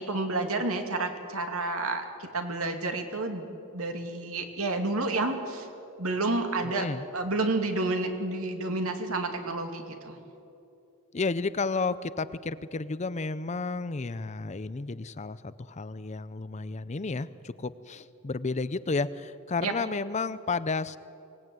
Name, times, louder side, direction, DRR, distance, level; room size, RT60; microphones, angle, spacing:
voice 1, 0.0-2.0 2.3-3.5 3.7-5.7 6.0-6.9 7.1-10.2 19.6-19.7, right 2 dB, 70° right, 5 dB, 2.5 m, -30 dB
voice 2, 6.6-7.0 11.1-21.0, left 3 dB, 30° left, 15 dB, 0.6 m, -32 dB
24.0 x 18.5 x 9.3 m, 2.7 s
head